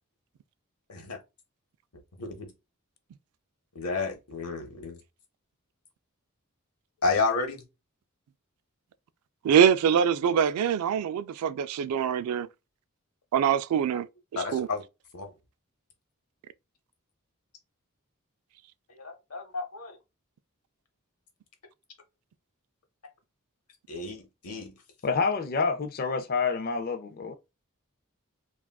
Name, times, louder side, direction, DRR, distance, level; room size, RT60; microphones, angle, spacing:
voice 1, 2.2-2.5 3.7-5.0 7.0-7.6 14.4-14.8 15.1-15.3 18.9-20.0 23.9-24.2 24.4-24.7, left 4 dB, 85° left, 0.9 m, -31 dB
voice 2, 9.4-12.5 13.3-14.1 14.5-14.7, right 8 dB, 85° right, 0.3 m, -24 dB
voice 3, 25.0-27.3, left 4 dB, 45° left, 0.4 m, -28 dB
3.4 x 2.4 x 2.3 m
head